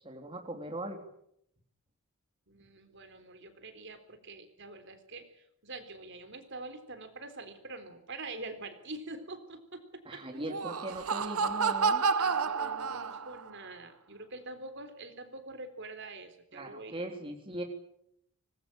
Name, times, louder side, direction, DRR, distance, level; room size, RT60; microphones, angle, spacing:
voice 1, 0.0-1.0 10.1-12.0 16.5-17.6, right 1 dB, 25° right, 3 dB, 3.4 m, -39 dB
voice 2, 2.5-10.2 12.2-17.0, right 2 dB, 55° right, 8 dB, 3.7 m, -45 dB
Laughter, 10.3-13.5, right 5 dB, 85° right, 1.1 m, -30 dB
25.0 x 20.0 x 8.9 m, 0.75 s
head